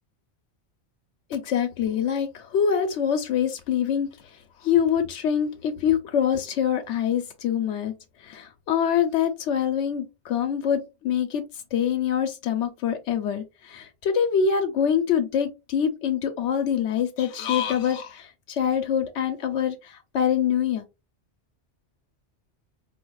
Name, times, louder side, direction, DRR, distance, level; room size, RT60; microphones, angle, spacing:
voice 1, 1.3-4.1 4.6-7.9 8.2-11.4 11.7-20.8, left 8 dB, 90° left, 1.0 m, -25 dB
4.2 x 2.7 x 2.3 m
omnidirectional pair, 1.2 m